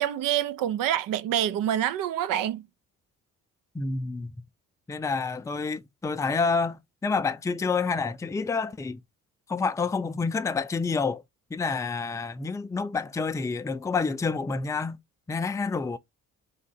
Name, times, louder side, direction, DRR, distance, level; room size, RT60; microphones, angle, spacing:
voice 1, 0.0-2.7, right 11 dB, 90° right, 0.5 m, -26 dB
voice 2, 3.7-4.3 4.9-9.0 9.5-11.2 11.5-15.0 15.3-16.0, left 4 dB, 10° left, 0.4 m, -28 dB
3.6 x 2.8 x 4.2 m
cardioid pair, 90°, 32 cm